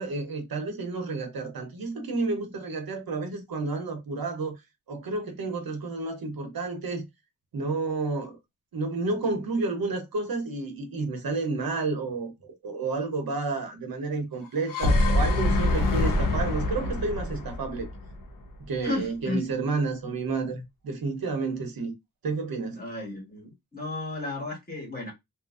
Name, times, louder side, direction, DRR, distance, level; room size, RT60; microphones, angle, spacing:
voice 1, 0.0-4.6 4.9-7.1 7.5-8.4 8.7-17.9 18.6-21.9 22.2-22.8, right 3 dB, 80° right, 0.8 m, -30 dB
sound 1, 14.5-18.6, left 2 dB, 65° left, 0.7 m, -25 dB
voice 2, 18.8-19.4 22.7-25.1, left 2 dB, 25° left, 1.2 m, -33 dB
3.0 x 2.5 x 2.3 m
wide cardioid pair, 140°, 35 cm